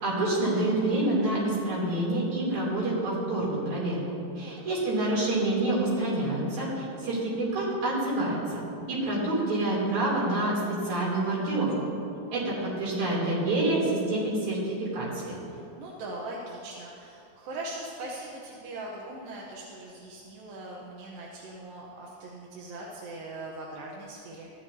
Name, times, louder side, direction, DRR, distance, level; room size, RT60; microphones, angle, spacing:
voice 1, 0.0-4.0 4.4-8.6 8.9-11.7 12.3-15.4, right 2 dB, 50° right, -7 dB, 4.3 m, -27 dB
voice 2, 4.4-4.8 12.3-12.7 15.5-24.5, right 2 dB, 75° right, -4 dB, 2.6 m, -41 dB
15.0 x 12.0 x 2.8 m, 2.6 s
omnidirectional pair, 4.2 m